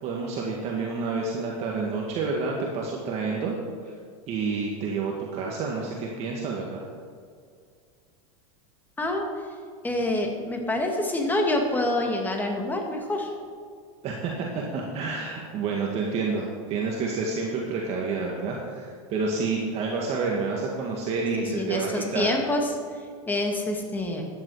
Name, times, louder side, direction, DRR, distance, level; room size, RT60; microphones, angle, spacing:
voice 1, 0.0-3.5 4.3-6.8 14.0-22.3, right 4 dB, 40° right, -1 dB, 1.9 m, -29 dB
voice 2, 9.8-13.3 21.4-24.3, left 1 dB, 10° left, 2 dB, 1.9 m, -27 dB
15.0 x 10.5 x 4.9 m, 2.2 s
supercardioid pair, 150°, 17 cm